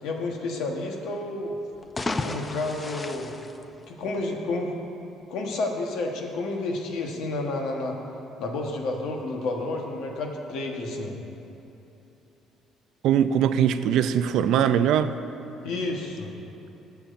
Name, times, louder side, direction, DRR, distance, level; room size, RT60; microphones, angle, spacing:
voice 1, 0.0-1.6 2.2-3.3 3.9-4.7 5.3-8.0 8.4-11.1 15.6-16.3, left 2 dB, 70° left, 1 dB, 1.2 m, -30 dB
sound 1, 1.7-4.3, left 2 dB, 20° left, 0.4 m, -33 dB
voice 2, 13.0-15.2, right 9 dB, 70° right, 11 dB, 0.4 m, -21 dB
20.0 x 7.0 x 2.6 m, 2.9 s
cardioid pair, 140°, 0 cm